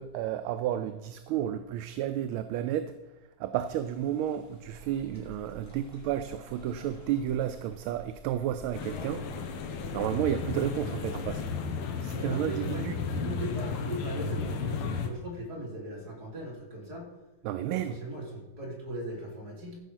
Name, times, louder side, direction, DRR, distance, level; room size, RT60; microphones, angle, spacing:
voice 1, 0.0-2.9 3.4-9.3 9.9-11.4 12.0-13.0 17.4-18.0, right 11 dB, 80° right, 11 dB, 1.4 m, -31 dB
sound 1, 3.6-11.2, equal, 5° left, 2.9 m, -55 dB
sound 2, 4.6-11.6, left 1 dB, 55° left, 1.5 m, -51 dB
sound 3, 8.7-15.1, left 5 dB, 85° left, 2.0 m, -34 dB
voice 2, 12.1-17.1 17.6-19.8, right 1 dB, 45° right, -2 dB, 3.5 m, -39 dB
14.0 x 5.6 x 6.2 m, 1.1 s
omnidirectional pair, 2.3 m